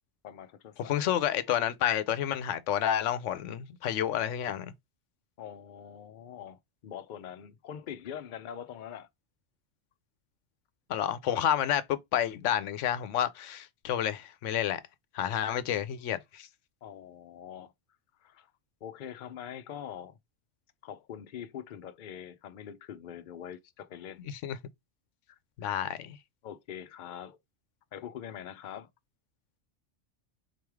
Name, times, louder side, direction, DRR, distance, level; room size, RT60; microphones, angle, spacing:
voice 1, 0.2-1.0 5.4-9.1 15.6-15.8 16.8-17.7 18.2-18.5 18.8-20.2 20.8-24.2 25.3-25.8 26.4-27.4 27.9-28.9, left 9 dB, 55° left, 0.6 m, -43 dB
voice 2, 0.8-4.7 10.9-14.8 15.1-16.5 24.3-24.6 25.6-26.2, left 10 dB, 90° left, 1.0 m, -30 dB
4.1 x 3.2 x 3.4 m
omnidirectional pair, 1.2 m